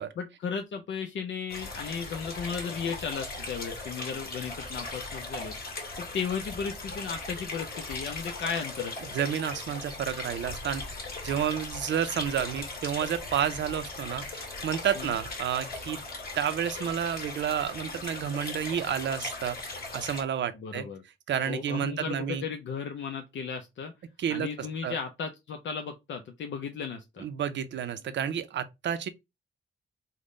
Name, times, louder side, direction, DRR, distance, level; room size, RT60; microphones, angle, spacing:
voice 1, 0.2-5.5 6.0-9.0 15.0-15.1 20.5-21.0 21.5-23.9 24.3-27.3, left 6 dB, 70° left, 0.5 m, -35 dB
sound 1, 1.5-20.2, left 3 dB, 50° left, 1.5 m, -39 dB
voice 2, 9.1-10.8 11.2-16.0 16.4-19.6 19.9-20.9 21.3-22.4 24.2-24.5 24.8-25.0 27.2-29.1, right 9 dB, 65° right, 0.5 m, -30 dB
3.6 x 2.1 x 3.6 m
wide cardioid pair, 130°, 20 cm